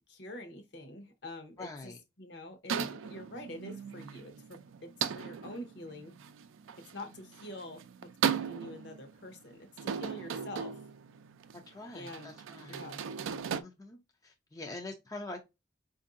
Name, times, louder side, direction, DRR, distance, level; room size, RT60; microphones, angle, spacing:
voice 1, 0.1-6.2 6.8-10.8 11.9-12.3 12.7-13.1, left 1 dB, 60° left, 0.9 m, -46 dB
voice 2, 1.6-2.0 11.5-12.8 13.6-15.5, left 2 dB, 15° left, 0.4 m, -44 dB
sound 1, 2.7-13.6, right 7 dB, 85° right, 0.4 m, -37 dB
4.5 x 2.6 x 2.4 m
head